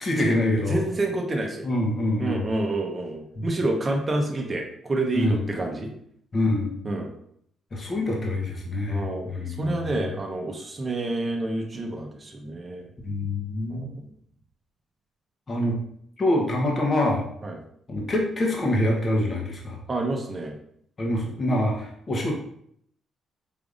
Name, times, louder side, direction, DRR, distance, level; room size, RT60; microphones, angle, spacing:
voice 1, 0.0-0.8 1.6-2.4 3.4-3.5 5.1-5.4 6.3-6.8 7.7-10.0 13.0-13.9 15.5-15.8 16.2-17.2 17.9-19.8 21.0-22.3, left 1 dB, 35° left, -1 dB, 1.0 m, -25 dB
voice 2, 0.7-1.7 2.2-5.9 6.8-7.1 8.9-12.9 13.7-14.1 17.4-17.6 19.9-20.5, right 2 dB, 30° right, 1 dB, 0.8 m, -28 dB
5.0 x 3.4 x 2.5 m, 0.68 s
cardioid pair, 90°, 0 cm